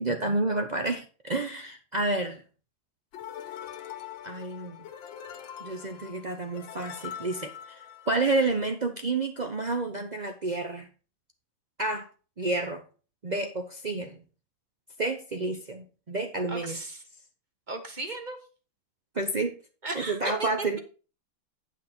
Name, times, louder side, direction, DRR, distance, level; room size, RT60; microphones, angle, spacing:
voice 1, 0.0-2.4 4.2-4.8 5.6-10.9 11.8-12.1 12.4-12.8 13.2-14.2 15.0-16.8 19.1-19.5 19.9-20.8, right 2 dB, 75° right, 5 dB, 0.4 m, -30 dB
sound 1, 3.1-8.6, left 9 dB, 85° left, 1.7 m, -43 dB
voice 2, 16.5-17.0 17.7-18.4 19.8-20.8, right 2 dB, 30° right, 6 dB, 1.1 m, -36 dB
9.3 x 6.0 x 4.4 m, 0.35 s
omnidirectional pair, 2.1 m